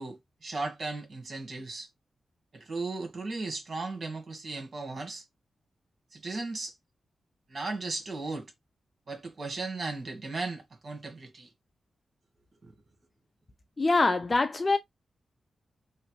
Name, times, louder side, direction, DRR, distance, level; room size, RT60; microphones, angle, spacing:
voice 1, 0.0-1.9 2.5-5.2 6.1-6.7 7.5-8.5 9.1-11.5 12.6-12.7, right 3 dB, 50° right, 1.4 m, -36 dB
voice 2, 13.8-14.8, left 3 dB, 35° left, 0.4 m, -24 dB
3.1 x 3.0 x 2.2 m
cardioid pair, 60°, 0 cm